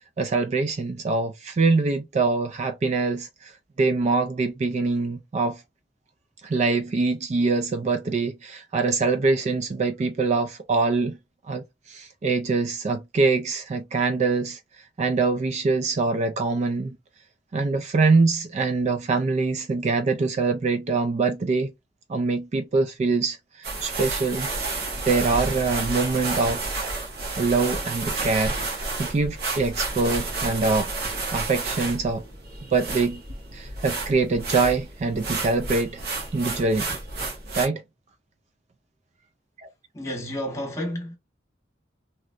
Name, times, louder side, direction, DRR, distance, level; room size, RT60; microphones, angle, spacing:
voice 1, 0.2-3.5 3.8-5.6 6.4-11.2 11.5-14.6 15.0-17.0 17.5-21.7 22.1-24.5 25.0-26.7 27.4-30.9 31.3-32.2 32.7-33.2 33.5-36.0 36.3-37.0 37.6-37.8 39.6-39.7, right 3 dB, 40° right, 0.3 m, -24 dB
sound 1, 23.6-37.7, right 3 dB, 60° right, 1.2 m, -31 dB
voice 2, 39.9-41.2, equal, 15° left, 1.5 m, -31 dB
3.1 x 3.0 x 2.4 m
head